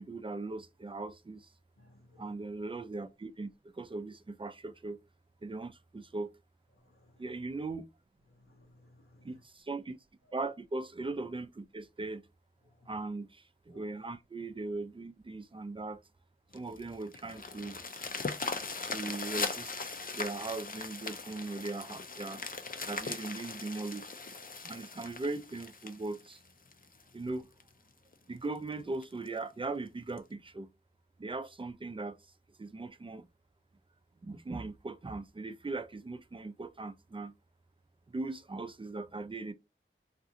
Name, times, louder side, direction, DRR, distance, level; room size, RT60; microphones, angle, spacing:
voice 1, 0.0-1.5 2.2-5.0 5.4-6.3 7.2-7.9 9.2-10.0 10.3-12.2 12.9-16.0 16.5-17.8 18.8-22.4 22.8-24.1 24.6-26.4 27.1-27.5 28.3-30.7 31.2-32.2 32.6-33.3 34.2-37.3 38.1-39.5, right 3 dB, 25° right, 0.4 m, -39 dB
voice 2, 1.8-2.3 6.8-7.2 8.3-9.4 12.7-12.9 13.7-13.8, left 2 dB, 85° left, 0.9 m, -62 dB
sound 1, 16.5-27.0 27.6-27.7 28.1-28.2 28.6-28.7 29.0-29.3 30.2-30.3, left 4 dB, 40° left, 0.5 m, -39 dB
2.5 x 2.4 x 2.8 m
wide cardioid pair, 60°, 21 cm